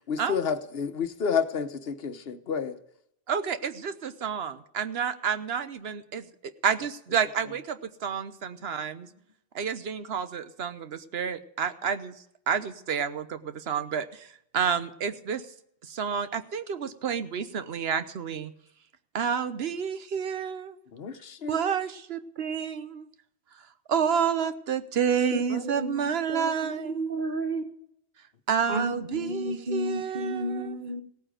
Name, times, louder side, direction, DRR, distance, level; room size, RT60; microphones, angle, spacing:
voice 1, 0.1-2.8 20.9-21.6 25.5-25.6, left 6 dB, 70° left, 10 dB, 1.2 m, -30 dB
voice 2, 3.3-6.2 6.6-9.1 9.5-12.1 12.5-14.3 14.5-15.4 15.9-18.5 19.1-20.8 21.5-23.1 23.9-27.0 28.5-30.7, right 7 dB, 80° right, 11 dB, 1.1 m, -29 dB
voice 3, 25.3-27.7 28.7-31.0, right 1 dB, 55° right, 7 dB, 1.5 m, -32 dB
17.0 x 9.0 x 5.1 m, 0.72 s
omnidirectional pair, 1.0 m